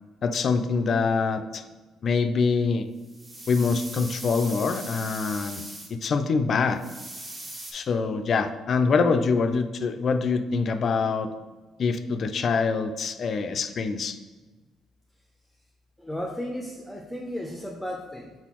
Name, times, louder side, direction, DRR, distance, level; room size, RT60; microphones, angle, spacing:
voice 1, 0.2-1.6 2.0-2.9 3.5-5.6 5.9-6.8 7.7-11.3 11.8-14.2, left 4 dB, 55° left, 9 dB, 0.3 m, -25 dB
sound 1, 3.0-5.9 6.8-7.7, right 1 dB, 30° right, 1.0 m, -40 dB
voice 2, 16.0-18.3, equal, 5° left, -1 dB, 0.6 m, -34 dB
4.1 x 3.9 x 2.9 m, 1.3 s
supercardioid pair, 70°, 0 cm